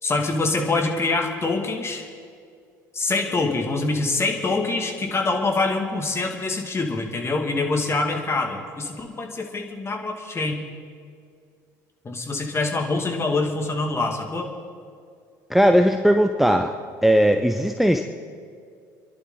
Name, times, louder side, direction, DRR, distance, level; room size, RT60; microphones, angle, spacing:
voice 1, 0.0-2.1 2.9-10.6 12.0-14.5, left 3 dB, 25° left, 3 dB, 2.2 m, -25 dB
voice 2, 15.5-16.7 17.0-18.1, equal, ahead, 6 dB, 0.8 m, -18 dB
27.0 x 11.5 x 3.9 m, 2.2 s
hypercardioid pair, 60°, 10 cm